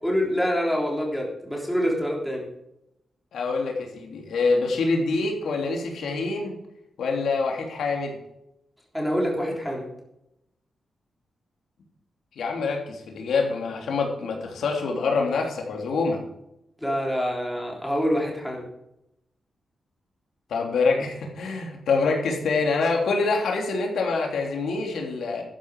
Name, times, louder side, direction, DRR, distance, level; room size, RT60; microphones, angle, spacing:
voice 1, 0.0-2.5 8.9-9.9 16.8-18.7, equal, 5° left, -1 dB, 3.5 m, -26 dB
voice 2, 3.3-6.6 7.0-8.2 12.4-16.2 20.5-25.4, left 4 dB, 90° left, 1 dB, 3.2 m, -25 dB
12.5 x 10.0 x 4.9 m, 0.82 s
wide cardioid pair, 155°, 0 cm